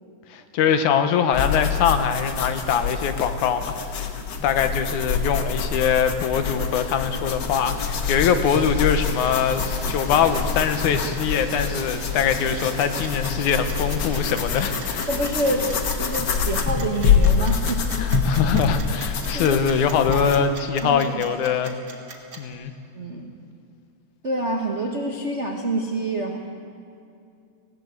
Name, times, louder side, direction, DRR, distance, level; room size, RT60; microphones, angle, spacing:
voice 1, 0.3-4.1 4.4-15.1 18.0-21.8 22.4-22.7, left 7 dB, 80° left, 9 dB, 2.5 m, -23 dB
sound 1, 1.3-20.4, left 6 dB, 55° left, 1.2 m, -26 dB
sound 2, 8.4-15.9, left 1 dB, 20° left, 7.3 m, -40 dB
sound 3, 12.6-22.5, right 5 dB, 40° right, 2.2 m, -40 dB
voice 2, 15.1-15.6 16.0-17.8 19.3-19.6 20.0-20.4 20.8-21.3 22.9-23.3 24.2-26.4, right 2 dB, 75° right, 1 dB, 0.6 m, -27 dB
19.0 x 17.0 x 8.1 m, 2.5 s
omnidirectional pair, 3.5 m